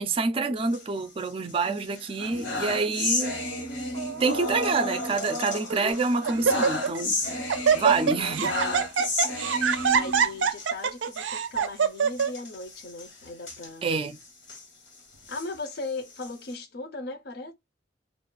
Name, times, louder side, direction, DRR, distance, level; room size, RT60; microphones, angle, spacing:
voice 1, 0.0-3.4 4.2-7.2 7.7-8.6 13.8-14.2, right 4 dB, 30° right, 0.4 m, -27 dB
sound 1, 0.6-1.5 1.9-10.7 11.1-11.2 11.5-11.6 12.1-14.6 15.1-16.5, left 2 dB, 90° left, 1.2 m, -32 dB
Laughter, 3.9-4.4 5.1-5.2 5.7-6.0 6.3-7.0 7.3-12.3, right 6 dB, 85° right, 0.4 m, -24 dB
voice 2, 7.7-8.9 9.9-13.9 15.3-17.5, left 3 dB, 60° left, 0.6 m, -38 dB
2.4 x 2.4 x 3.8 m
head